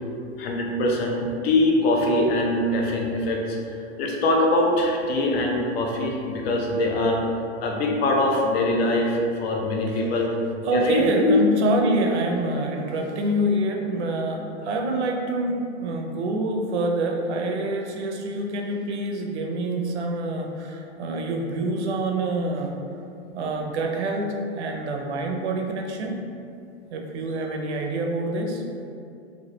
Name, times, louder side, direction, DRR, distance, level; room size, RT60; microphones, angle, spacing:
voice 1, 0.4-7.2 7.6-10.3 10.7-11.4, left 1 dB, 65° left, 0 dB, 0.6 m, -23 dB
voice 2, 10.6-22.7 23.3-26.2 26.9-28.6, right 1 dB, 75° right, 1 dB, 0.6 m, -26 dB
3.1 x 2.2 x 2.8 m, 2.5 s
hypercardioid pair, 135°, 34 cm